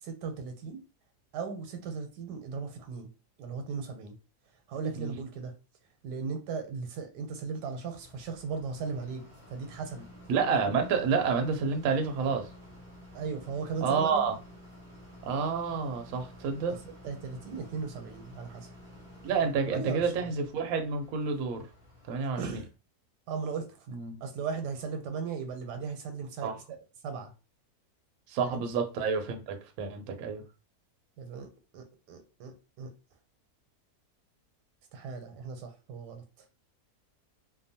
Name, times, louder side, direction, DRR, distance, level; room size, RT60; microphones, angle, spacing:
voice 1, 0.0-0.8 1.3-3.1 3.4-4.2 4.7-5.5 6.0-10.1 13.1-14.3 16.7-18.7 19.7-20.3 22.4-22.7 23.3-23.9 24.2-26.8 27.0-27.3 28.5-28.7 31.2-32.9 34.9-36.5, right 5 dB, 85° right, 1.2 m, -37 dB
sound 1, 8.0-22.7, left 1 dB, 45° right, 0.6 m, -51 dB
voice 2, 10.3-12.5 13.8-14.3 15.2-16.8 19.2-21.7 22.1-22.4 23.9-24.2 26.4-26.5 28.3-30.4, right 5 dB, 70° right, 0.9 m, -29 dB
2.8 x 2.1 x 2.6 m
omnidirectional pair, 1.8 m